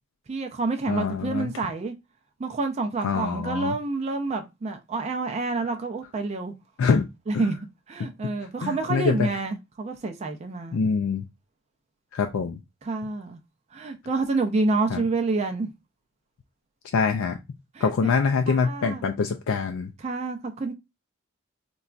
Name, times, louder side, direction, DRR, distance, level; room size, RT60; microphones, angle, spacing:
voice 1, 0.3-1.9 2.4-6.5 7.3-7.6 7.9-10.8 12.8-13.4 13.7-15.7 17.7-18.1 18.5-19.1 20.0-20.7, right 3 dB, 30° right, 0.4 m, -28 dB
voice 2, 0.9-1.5 3.0-3.7 6.8-7.1 7.3-7.4 8.6-9.3 10.7-11.2 12.1-12.6 14.9-15.0 16.9-17.4 17.8-19.9, left 5 dB, 80° left, 0.3 m, -24 dB
3.9 x 2.2 x 2.4 m
head